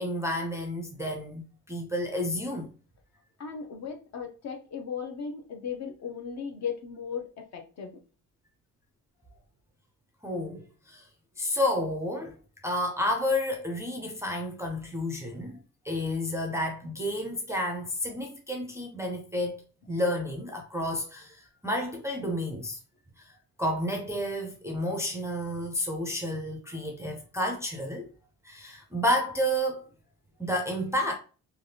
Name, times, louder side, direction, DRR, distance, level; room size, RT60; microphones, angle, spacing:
voice 1, 0.0-2.7 10.2-11.1 11.4-12.3 12.6-15.6 15.8-22.8 23.2-23.3 23.6-28.1 28.4-29.9 30.4-31.1, left 1 dB, 10° right, 0.3 m, -31 dB
voice 2, 3.4-8.0, left 6 dB, 55° left, 0.7 m, -37 dB
3.3 x 2.4 x 2.6 m
cardioid pair, 165°, 34 cm